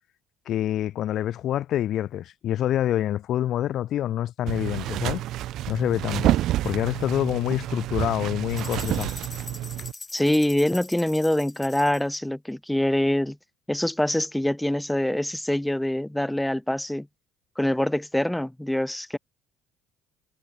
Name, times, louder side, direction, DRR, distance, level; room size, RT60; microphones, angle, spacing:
voice 1, 0.5-5.2 5.7-6.3 6.6-9.1, left 12 dB, 60° left, 0.9 m, -26 dB
sound 1, 4.5-9.9, right 14 dB, 65° right, 0.5 m, -28 dB
sound 2, 8.5-12.2, left 3 dB, 25° left, 2.0 m, -42 dB
voice 2, 10.1-13.4 13.7-17.1 17.6-19.2, left 1 dB, 5° left, 1.5 m, -24 dB
supercardioid pair, 70°, 0 cm